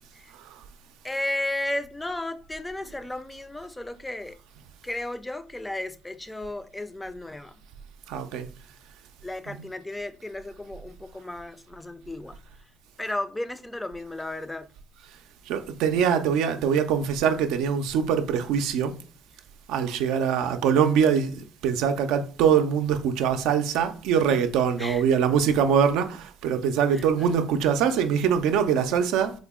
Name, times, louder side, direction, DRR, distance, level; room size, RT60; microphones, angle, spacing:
voice 1, 1.0-4.4 4.8-7.5 9.2-12.4 13.0-14.7 24.8-25.0 26.9-27.1 27.4-27.5, left 1 dB, 10° left, 0.4 m, -34 dB
voice 2, 8.1-8.5 9.5-9.6 15.5-19.0 19.7-29.3, right 7 dB, 80° right, 0.4 m, -23 dB
3.6 x 2.0 x 3.5 m
supercardioid pair, 80°, 0 cm